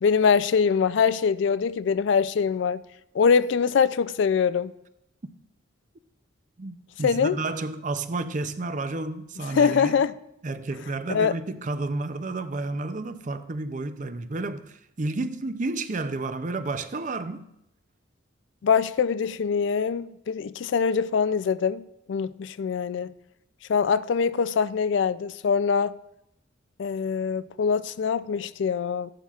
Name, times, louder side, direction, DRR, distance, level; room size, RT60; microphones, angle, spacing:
voice 1, 0.0-2.8 3.1-4.7 7.0-7.4 9.5-10.1 11.1-11.3 18.6-23.1 23.7-25.9 26.8-29.1, left 6 dB, 65° left, 0.3 m, -23 dB
voice 2, 6.6-9.9 10.4-17.5, right 3 dB, 40° right, 0.5 m, -31 dB
14.0 x 11.5 x 2.4 m
head